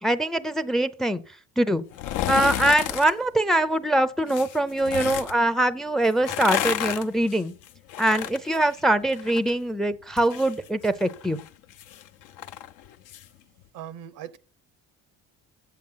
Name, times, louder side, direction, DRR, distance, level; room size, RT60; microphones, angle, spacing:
voice 1, 0.0-1.2 1.6-1.8 2.3-7.5 8.0-11.4, right 1 dB, ahead, 0.5 m, -23 dB
sound 1, 1.9-3.1 4.3-5.3 6.1-9.5 9.8-13.3 13.6-13.7, left 11 dB, 70° left, 0.7 m, -32 dB
voice 2, 13.7-14.4, right 10 dB, 75° right, 0.8 m, -39 dB
8.4 x 7.5 x 5.6 m
cardioid pair, 105°, 32 cm